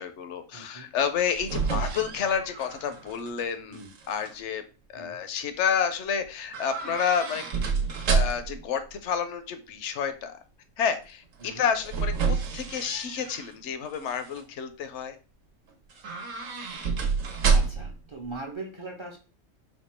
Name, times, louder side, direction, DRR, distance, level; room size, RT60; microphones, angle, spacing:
voice 1, 0.0-3.8 4.1-4.6 4.9-7.4 8.1-10.4 10.8-15.2, left 7 dB, 65° left, 9 dB, 0.8 m, -29 dB
voice 2, 0.5-0.9 3.7-3.9 4.9-5.2 11.4-11.6 17.5-19.2, right 2 dB, 30° right, 1 dB, 0.5 m, -40 dB
sound 1, 1.0-3.4 3.7-4.3 6.5-8.6 11.4-13.5 13.9-14.4 15.9-18.0 18.2-18.3, right 5 dB, 70° right, 1.1 m, -29 dB
4.4 x 2.3 x 4.3 m, 0.35 s
omnidirectional pair, 1.4 m